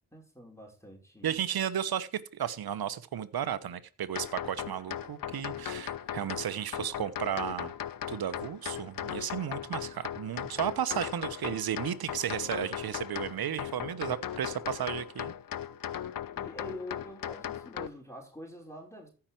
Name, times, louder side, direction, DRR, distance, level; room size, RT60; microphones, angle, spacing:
voice 1, 0.1-1.4 16.0-19.1, left 1 dB, 5° left, 5.4 m, -46 dB
voice 2, 1.2-7.7 8.1-15.3, right 9 dB, 55° right, 1.1 m, -34 dB
sound 1, 4.2-17.9, left 10 dB, 50° left, 0.8 m, -38 dB
14.5 x 5.9 x 4.6 m
hypercardioid pair, 40°, 43 cm